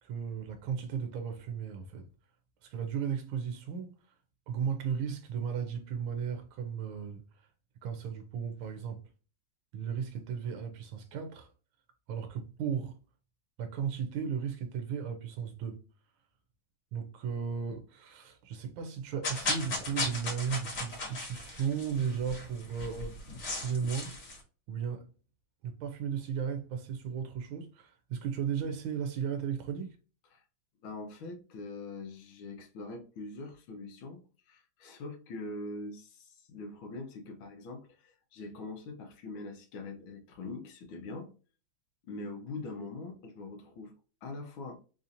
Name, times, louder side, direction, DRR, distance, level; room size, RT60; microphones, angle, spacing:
voice 1, 0.0-2.1 2.6-3.9 4.5-7.2 7.8-9.0 9.7-11.5 12.1-13.0 13.6-15.8 16.9-24.2 24.7-25.1 25.6-30.0, right 7 dB, 85° right, 1.4 m, -35 dB
sound 1, 19.2-24.4, left 2 dB, 50° left, 1.7 m, -36 dB
voice 2, 30.8-41.3 42.0-43.9 44.2-44.8, left 3 dB, 80° left, 1.6 m, -43 dB
4.1 x 2.5 x 2.7 m
omnidirectional pair, 2.2 m